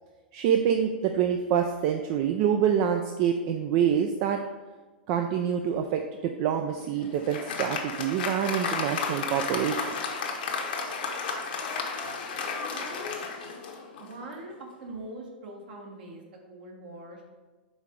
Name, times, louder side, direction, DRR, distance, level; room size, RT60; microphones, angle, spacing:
voice 1, 0.3-4.4 5.1-9.9, right 8 dB, 45° right, 5 dB, 0.4 m, -26 dB
Applause, 6.7-14.2, left 5 dB, 60° left, 1.0 m, -33 dB
voice 2, 12.7-13.1 14.0-14.5 14.8-17.2, right 2 dB, 65° right, 0 dB, 1.4 m, -42 dB
5.1 x 3.7 x 5.2 m, 1.3 s
hypercardioid pair, 100°, 5 cm